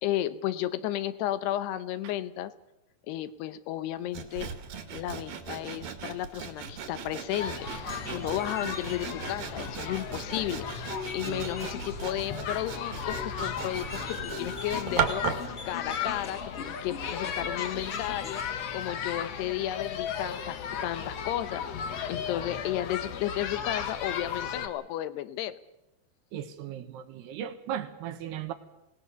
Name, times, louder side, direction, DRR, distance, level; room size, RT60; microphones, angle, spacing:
voice 1, 0.0-2.5 3.1-4.5 4.9-10.7 11.1-18.4 18.7-21.6 22.1-25.6, left 13 dB, 80° left, 13 dB, 3.0 m, -33 dB
Sawing, 4.1-15.5, right 7 dB, 60° right, 3.4 m, -37 dB
sound 1, 7.4-24.7, left 7 dB, 65° left, 1.7 m, -36 dB
sound 2, 7.7-18.4, left 2 dB, 25° left, 1.5 m, -45 dB
voice 2, 26.3-28.5, right 10 dB, 80° right, 8 dB, 3.5 m, -37 dB
25.5 x 19.0 x 6.9 m, 0.91 s
omnidirectional pair, 4.7 m